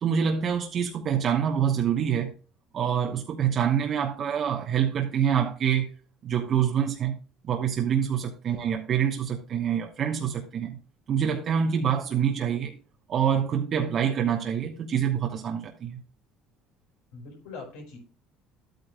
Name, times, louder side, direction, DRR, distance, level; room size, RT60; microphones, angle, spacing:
voice 1, 0.0-2.3 2.7-5.9 6.2-7.2 7.4-10.8 11.1-12.8 13.1-16.0, right 8 dB, 45° right, 1.0 m, -26 dB
voice 2, 17.1-18.0, left 4 dB, 90° left, 4.9 m, -42 dB
11.5 x 9.0 x 2.3 m
supercardioid pair, 100°, 0 cm